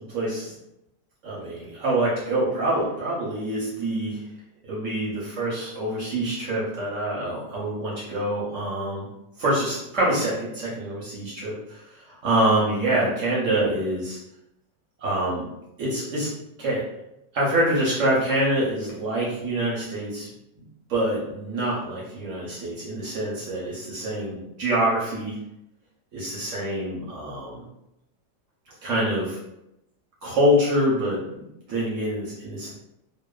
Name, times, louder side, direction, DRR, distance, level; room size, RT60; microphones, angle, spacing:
voice 1, 0.1-0.5 1.2-4.2 4.7-9.1 9.4-14.2 15.0-15.5 15.8-16.3 16.6-16.8 17.3-20.3 20.9-25.3 26.1-27.6 28.8-29.4 30.2-31.2 31.7-32.7, right 1 dB, 60° right, -5 dB, 0.8 m, -25 dB
2.9 x 2.0 x 2.3 m, 0.85 s
omnidirectional pair, 1.9 m